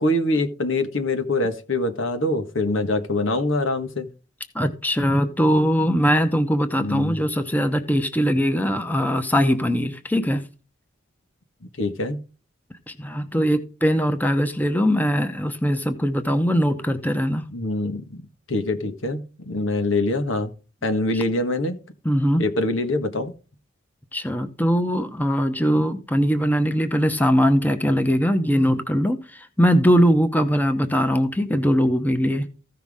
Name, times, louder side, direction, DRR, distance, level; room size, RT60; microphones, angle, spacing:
voice 1, 0.0-4.1 6.8-7.2 11.6-12.2 17.5-20.5 20.8-21.8 22.4-23.3, left 2 dB, 85° left, 1.5 m, -24 dB
voice 2, 4.5-10.4 12.9-17.4 22.0-22.4 24.1-32.5, equal, 10° left, 0.9 m, -21 dB
15.0 x 5.9 x 3.6 m
head